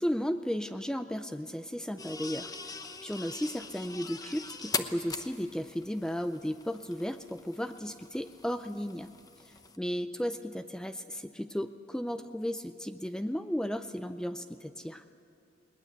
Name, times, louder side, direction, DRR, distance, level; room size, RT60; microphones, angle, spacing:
voice 1, 0.0-9.1 9.4-15.0, equal, 5° left, 9 dB, 0.4 m, -35 dB
sound 1, 2.0-9.8, left 4 dB, 20° left, 0.9 m, -42 dB
21.0 x 19.5 x 8.0 m, 3.0 s
head